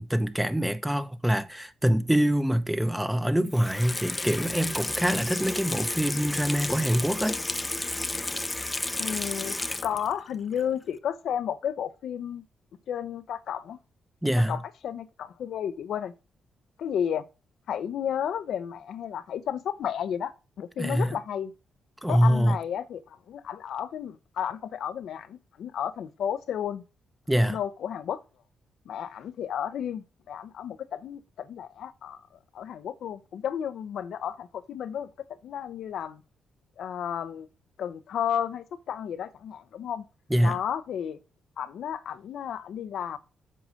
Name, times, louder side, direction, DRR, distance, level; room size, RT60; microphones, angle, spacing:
voice 1, 0.0-7.4 14.2-14.6 20.8-21.2 22.0-22.6 27.3-27.6 40.3-40.6, equal, 5° right, 1.0 m, -25 dB
Water tap faucet / Sink (filling or washing), 3.5-10.2 10.6-10.7, left 2 dB, 20° left, 0.7 m, -32 dB
voice 2, 9.0-12.4 12.9-13.8 14.5-16.1 16.8-17.2 17.7-21.5 22.1-26.8 27.4-28.2 28.9-32.2 32.5-35.1 35.4-36.2 36.8-37.5 37.8-40.0 40.4-41.2 41.6-43.2, left 9 dB, 75° left, 0.8 m, -32 dB
7.8 x 4.9 x 6.4 m
supercardioid pair, 65°, 0 cm